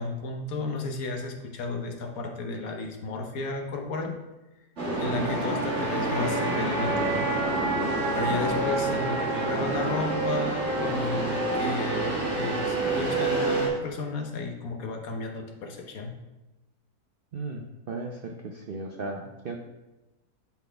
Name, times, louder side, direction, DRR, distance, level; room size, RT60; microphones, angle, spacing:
voice 1, 0.0-4.2 5.0-7.4 8.1-16.1, left 3 dB, 60° left, 2 dB, 1.3 m, -33 dB
sound 1, 4.8-13.7, right 2 dB, 45° right, 2.1 m, -27 dB
voice 2, 17.3-19.6, right 3 dB, 90° right, 2 dB, 0.5 m, -36 dB
11.5 x 4.0 x 3.4 m, 1.0 s
omnidirectional pair, 1.8 m